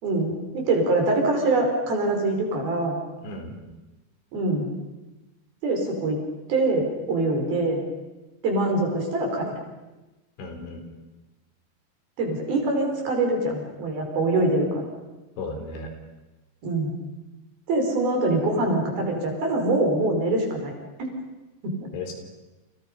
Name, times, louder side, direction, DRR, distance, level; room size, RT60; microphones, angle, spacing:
voice 1, 0.0-3.0 4.3-4.7 5.6-6.2 6.5-7.8 8.4-9.5 12.2-14.8 16.6-16.9 17.7-20.7 21.0-21.1 21.6-21.7, right 2 dB, 55° right, 2 dB, 6.8 m, -24 dB
voice 2, 10.4-10.8 15.4-15.9 21.9-22.1, left 3 dB, 80° left, 4 dB, 6.3 m, -34 dB
29.5 x 28.0 x 5.5 m, 1.1 s
omnidirectional pair, 5.1 m